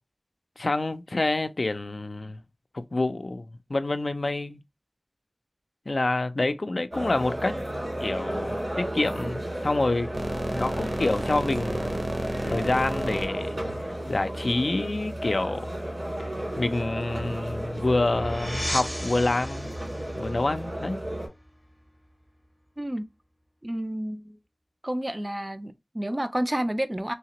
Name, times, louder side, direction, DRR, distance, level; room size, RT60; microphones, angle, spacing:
voice 1, 0.6-2.4 2.7-4.6 5.9-7.6 8.0-10.1 10.5-11.9 12.5-13.5 14.1-15.7 16.6-19.7 20.1-21.0, left 2 dB, 80° left, 0.3 m, -27 dB
sound 1, 6.9-21.3, right 1 dB, 90° right, 2.0 m, -33 dB
sound 2, 10.1-14.7, right 1 dB, 65° right, 0.7 m, -32 dB
sound 3, 17.2-22.1, equal, 15° left, 0.6 m, -37 dB
voice 2, 22.8-23.1 23.6-24.4 24.8-27.1, right 1 dB, 30° right, 0.4 m, -30 dB
3.3 x 2.8 x 2.9 m
wide cardioid pair, 45°, 0 cm